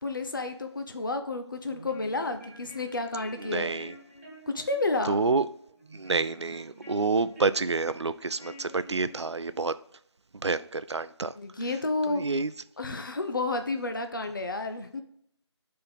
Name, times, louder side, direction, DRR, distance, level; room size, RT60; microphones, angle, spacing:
voice 1, 0.0-3.8 4.5-5.2 11.4-12.3 12.8-15.0, left 2 dB, 45° left, 0.6 m, -31 dB
sound 1, 1.6-9.7, equal, 25° right, 2.4 m, -49 dB
voice 2, 3.4-3.9 5.1-5.5 5.9-9.7 10.4-11.3 12.1-12.5, right 3 dB, 70° right, 0.4 m, -28 dB
5.3 x 4.4 x 5.3 m
figure-of-eight pair, 165°, 15 cm